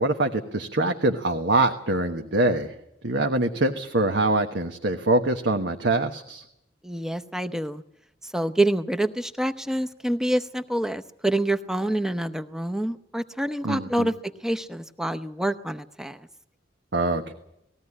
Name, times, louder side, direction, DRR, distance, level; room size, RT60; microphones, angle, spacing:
voice 1, 0.0-2.7 3.0-6.4 13.6-14.1 16.9-17.3, right 2 dB, 70° right, 5 dB, 1.3 m, -24 dB
voice 2, 6.8-7.8 8.2-14.1 14.4-16.3, right 1 dB, 5° right, 9 dB, 0.8 m, -27 dB
19.5 x 16.0 x 9.7 m, 0.81 s
head